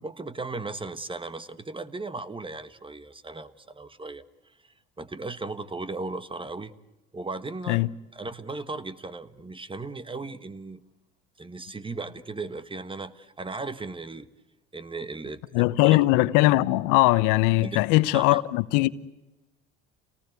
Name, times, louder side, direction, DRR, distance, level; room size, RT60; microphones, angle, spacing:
voice 1, 0.0-4.2 5.0-6.8 7.1-7.8 8.1-10.8 11.4-14.3 14.7-16.0 17.6-17.8 18.1-18.4, right 3 dB, 15° right, 1.4 m, -36 dB
voice 2, 15.5-18.9, left 19 dB, 75° left, 0.9 m, -20 dB
28.5 x 19.0 x 9.6 m
supercardioid pair, 80°, 31 cm